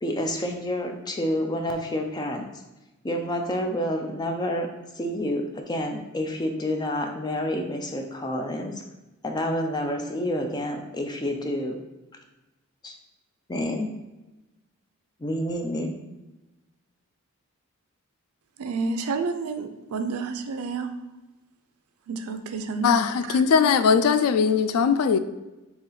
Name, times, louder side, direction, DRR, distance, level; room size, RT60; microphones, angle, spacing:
voice 1, 0.0-2.5 3.0-4.7 4.9-8.8 9.2-11.8 12.8-13.0 13.5-13.9 15.2-15.9, left 1 dB, 20° left, 0.4 m, -28 dB
voice 2, 18.6-20.9 22.1-23.4, right 4 dB, 85° right, 0.4 m, -30 dB
voice 3, 22.8-25.2, left 6 dB, 85° left, 0.3 m, -20 dB
4.1 x 2.9 x 3.9 m
head